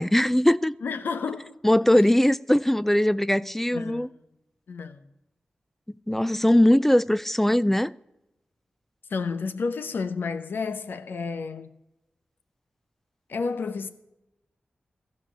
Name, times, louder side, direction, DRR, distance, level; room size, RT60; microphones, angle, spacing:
voice 1, 0.0-0.8 1.6-4.1 6.1-7.9, left 1 dB, 10° left, 0.3 m, -20 dB
voice 2, 0.8-1.6 3.7-4.1 4.7-5.0 9.1-11.7 13.3-13.9, left 4 dB, 85° left, 0.9 m, -31 dB
15.5 x 5.4 x 8.7 m
wide cardioid pair, 70°, 3 cm